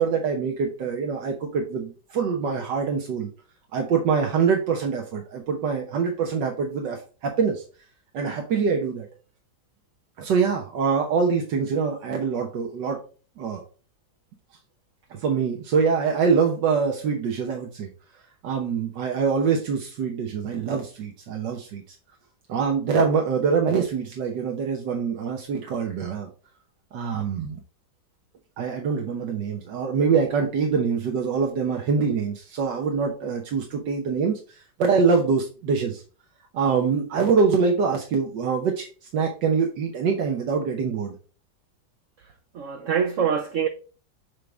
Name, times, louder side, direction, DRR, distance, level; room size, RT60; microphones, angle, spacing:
voice 1, 0.0-3.3 3.7-7.6 8.1-9.1 10.2-13.0 13.4-13.6 15.1-17.9 18.4-21.8 22.5-26.3 26.9-27.6 28.6-36.0 36.5-38.9 39.1-41.1, right 5 dB, 85° right, 1.6 m, -24 dB
voice 2, 42.2-43.7, right 7 dB, 65° right, 0.8 m, -25 dB
7.4 x 3.5 x 3.8 m
omnidirectional pair, 1.8 m